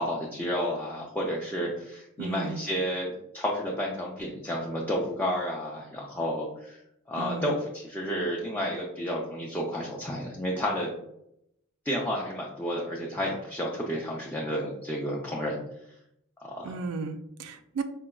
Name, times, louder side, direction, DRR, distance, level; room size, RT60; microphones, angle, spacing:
voice 1, 0.0-6.8 7.1-10.9 11.8-15.6 16.4-16.7, equal, 10° left, -3 dB, 0.4 m, -31 dB
voice 2, 2.2-2.6 7.2-7.5 16.6-17.8, right 4 dB, 75° right, 8 dB, 0.4 m, -34 dB
4.7 x 2.1 x 2.2 m, 0.78 s
head